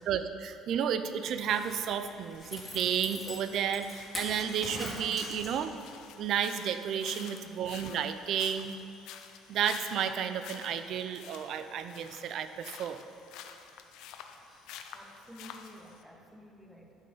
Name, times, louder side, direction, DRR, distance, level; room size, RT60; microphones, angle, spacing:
voice 1, 0.0-5.7 6.2-8.7 9.5-13.0, right 8 dB, 55° right, 10 dB, 0.5 m, -32 dB
Zipper (clothing), 1.3-5.9 6.2-6.3, left 1 dB, 15° left, 2.0 m, -42 dB
sound 1, 2.3-16.0, left 8 dB, 80° left, 0.6 m, -50 dB
voice 2, 7.3-7.7 14.1-17.0, equal, 5° right, 2 dB, 1.0 m, -54 dB
12.0 x 5.5 x 5.5 m, 2.6 s
cardioid pair, 145°, 0 cm